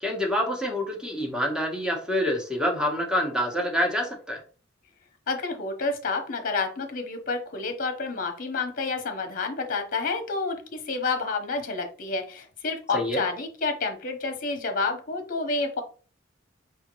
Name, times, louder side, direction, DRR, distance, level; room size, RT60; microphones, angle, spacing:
voice 1, 0.0-4.4 12.9-13.2, equal, 5° right, 0 dB, 1.1 m, -27 dB
voice 2, 5.3-15.8, left 3 dB, 45° left, 5 dB, 1.0 m, -29 dB
4.9 x 3.5 x 3.0 m, 0.39 s
head